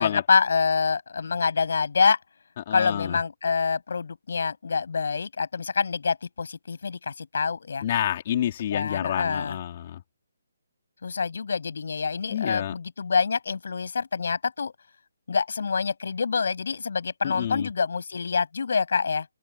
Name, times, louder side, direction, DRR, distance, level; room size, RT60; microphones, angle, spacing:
voice 1, 0.0-2.2 2.7-7.8 8.7-9.6 11.0-14.7 15.3-19.3, left 5 dB, 65° left, 7.6 m, -26 dB
voice 2, 2.6-3.2 7.8-10.0 12.3-12.7 17.2-17.7, left 11 dB, 35° left, 3.6 m, -28 dB
open air
hypercardioid pair, 165°, 0 cm